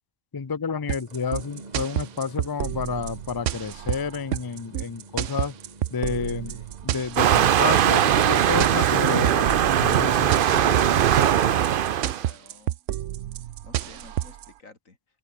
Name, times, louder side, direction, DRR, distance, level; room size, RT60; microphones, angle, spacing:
voice 1, 0.3-5.5 5.9-6.6 6.8-11.3, left 5 dB, 30° left, 0.4 m, -30 dB
sound 1, 0.9-14.5, right 12 dB, 70° right, 1.0 m, -30 dB
sound 2, 1.0-11.0, right 3 dB, 30° right, 2.1 m, -48 dB
Waves surf, 7.2-12.2, right 10 dB, 55° right, 0.6 m, -20 dB
voice 2, 9.1-12.8 13.6-15.0, left 3 dB, 80° left, 3.6 m, -48 dB
omnidirectional pair, 1.4 m